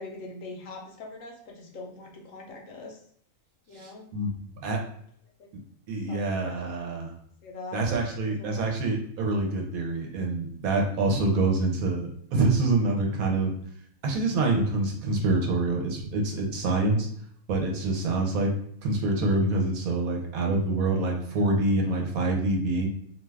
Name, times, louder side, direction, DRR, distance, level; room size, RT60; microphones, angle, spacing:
voice 1, 0.0-3.0 3.7-4.1 4.8-4.9 5.4-5.5 6.1-6.6 7.4-7.9 8.2-8.6, left 3 dB, 70° left, 0 dB, 0.9 m, -42 dB
voice 2, 3.7-4.3 4.6-4.8 5.9-7.1 7.7-13.5 14.0-17.1 17.5-18.5 18.8-22.9, right 2 dB, 75° right, 1 dB, 1.1 m, -26 dB
2.7 x 2.3 x 3.2 m, 0.65 s
omnidirectional pair, 1.5 m